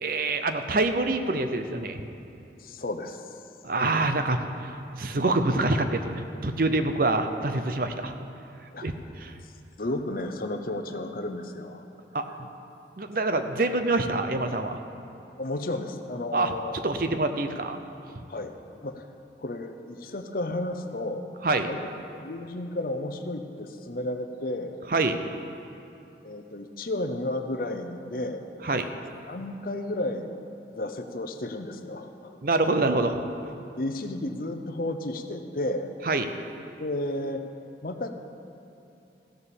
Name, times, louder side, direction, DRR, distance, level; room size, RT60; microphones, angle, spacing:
voice 1, 0.0-2.0 3.6-4.4 5.0-8.1 8.8-9.3 12.1-12.2 13.0-14.8 16.3-16.5 16.8-17.8 21.4-21.7 24.9-25.2 28.6-28.9 32.4-33.2 36.1-36.3, right 2 dB, 50° right, 8 dB, 0.7 m, -26 dB
voice 2, 2.6-3.2 8.7-8.9 9.8-11.8 15.4-16.8 18.3-18.5 18.8-19.1 19.4-21.3 21.6-21.8 22.1-25.0 26.2-28.4 29.3-30.4 30.7-32.4 33.8-35.9 36.8-37.4 37.8-38.1, left 1 dB, 50° left, 7 dB, 0.7 m, -32 dB
15.0 x 6.9 x 7.1 m, 2.8 s
head